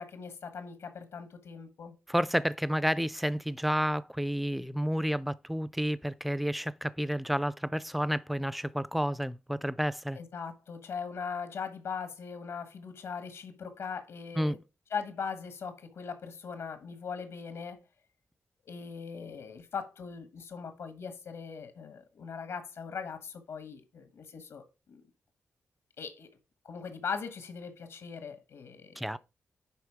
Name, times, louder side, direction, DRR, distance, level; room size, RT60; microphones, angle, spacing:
voice 1, 0.0-1.9 10.2-14.6 14.9-17.8 18.6-25.0 26.0-26.3 26.6-29.2, left 6 dB, 85° left, 1.4 m, -40 dB
voice 2, 2.1-10.2 14.4-14.6 29.0-29.2, equal, ahead, 0.4 m, -30 dB
10.5 x 3.9 x 4.8 m
wide cardioid pair, 115°, 5 cm